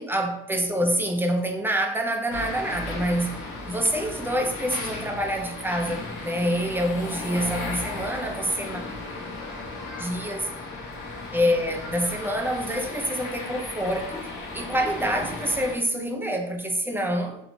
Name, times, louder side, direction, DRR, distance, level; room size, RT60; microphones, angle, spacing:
voice 1, 0.0-3.4 3.7-8.8 10.0-10.5 11.3-14.3 14.5-17.4, equal, 5° right, 0.4 m, -26 dB
sound 1, 2.3-15.7, left 2 dB, 85° left, 1.0 m, -35 dB
3.0 x 2.6 x 2.7 m
cardioid pair, 90°, 30 cm